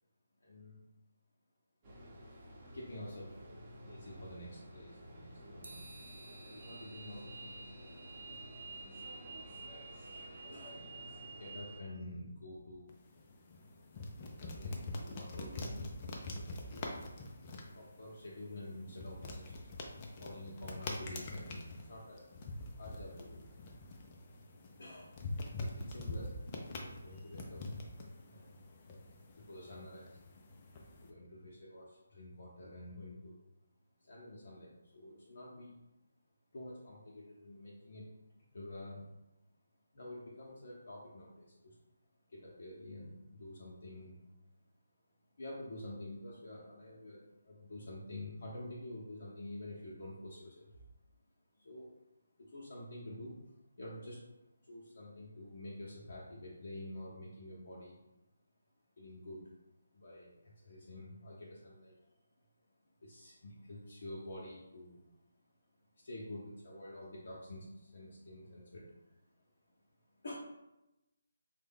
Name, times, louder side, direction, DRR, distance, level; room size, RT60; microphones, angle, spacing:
voice 1, 0.4-0.8 2.7-3.4 3.8-5.9 6.4-7.7 10.5-12.9 14.2-15.9 16.3-17.0 17.7-19.5 20.2-22.3 22.8-23.4 24.8-25.2 25.6-27.6 28.3-28.6 29.3-30.2 31.0-33.4 34.0-35.7 36.5-38.1 38.5-39.1 39.9-41.8 42.3-44.2 45.4-50.8 51.5-52.0 52.4-53.4 53.8-54.3 54.7-58.0 59.0-59.5 59.9-62.1 63.0-65.0 66.0-69.2 70.2-70.3, left 1 dB, 60° left, -5 dB, 0.7 m, -48 dB
sound 1, 1.8-11.8, right 2 dB, 25° right, 0.8 m, -50 dB
sound 2, 5.6-10.9, right 2 dB, 60° right, 0.5 m, -58 dB
sound 3, 12.9-31.1, left 2 dB, 30° left, 0.4 m, -45 dB
3.2 x 2.1 x 3.5 m, 0.93 s
figure-of-eight pair, 155°, 0 cm